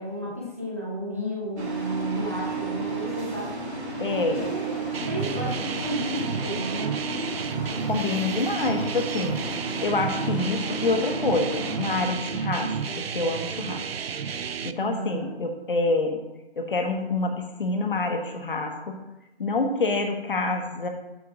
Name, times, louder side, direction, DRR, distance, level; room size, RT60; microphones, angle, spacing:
voice 1, 0.0-3.5 4.1-7.0 14.7-15.4, equal, 15° right, -4 dB, 0.6 m, -33 dB
sound 1, 1.6-12.1, right 2 dB, 90° right, 2.2 m, -33 dB
voice 2, 4.0-4.5 7.8-9.4 9.8-13.8 14.6-16.2 16.6-19.0 19.4-20.9, left 3 dB, 55° left, 3 dB, 1.3 m, -27 dB
sound 2, 4.9-14.7, right 6 dB, 65° right, 0.5 m, -32 dB
8.4 x 3.4 x 5.8 m, 1.0 s
hypercardioid pair, 170°, 32 cm